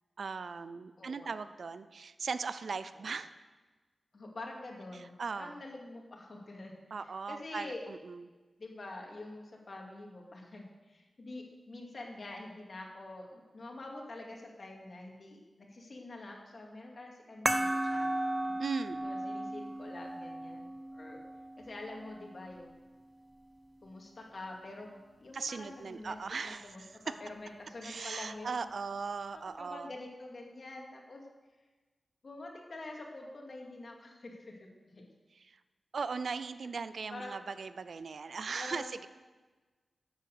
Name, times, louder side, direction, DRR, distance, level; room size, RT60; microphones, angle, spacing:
voice 1, 0.2-3.3 4.9-5.6 6.9-8.3 18.6-19.1 25.3-26.9 27.8-29.9 35.4-35.6 35.9-39.1, right 5 dB, 75° right, 12 dB, 0.5 m, -39 dB
voice 2, 1.0-1.3 3.0-3.1 4.1-7.8 8.6-18.1 18.4-18.5 19.0-21.2 21.6-22.8 23.8-26.2 26.4-28.6 29.3-31.2 32.2-34.7 34.9-35.1 37.1-37.4 38.5-39.0, left 2 dB, 55° left, 0 dB, 2.5 m, -46 dB
sound 1, 17.5-22.5, right 1 dB, 10° right, 0.6 m, -35 dB
12.5 x 8.2 x 6.7 m, 1.3 s
wide cardioid pair, 85°, 0 cm